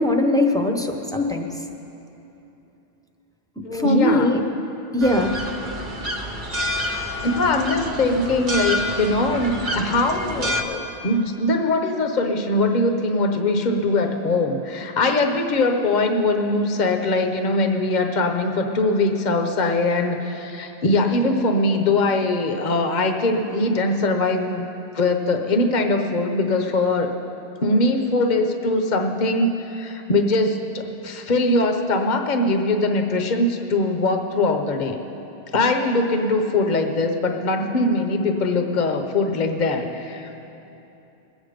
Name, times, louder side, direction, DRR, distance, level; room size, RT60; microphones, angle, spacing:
voice 1, 0.0-1.5 3.7-4.4 4.9-5.4, left 1 dB, 5° left, 2 dB, 0.8 m, -20 dB
voice 2, 3.6-4.5 7.2-24.7 24.9-27.1 27.6-35.0 35.5-40.3, left 2 dB, 50° left, 5 dB, 1.0 m, -21 dB
sound 1, 5.0-10.6, left 1 dB, 50° right, 1.0 m, -28 dB
21.0 x 8.4 x 5.1 m, 2.9 s
omnidirectional pair, 1.1 m